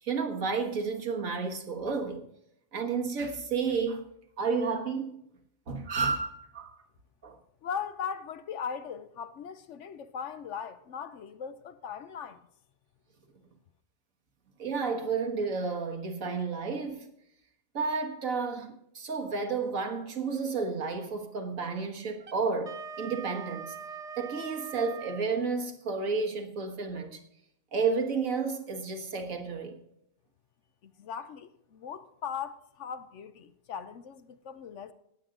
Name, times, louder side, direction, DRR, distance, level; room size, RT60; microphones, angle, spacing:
voice 1, 0.0-2.2 2.7-4.0 4.4-5.2 5.7-6.8 7.2-7.4 14.6-17.1 17.7-23.8 24.2-27.2 27.7-29.8, right 4 dB, 90° right, 1.9 m, -31 dB
voice 2, 7.6-12.4 30.8-34.9, left 7 dB, 70° left, 1.0 m, -39 dB
Wind instrument woodwind instrument, 22.2-25.3, right 7 dB, 45° right, 0.5 m, -42 dB
19.0 x 7.7 x 3.9 m
omnidirectional pair, 1.4 m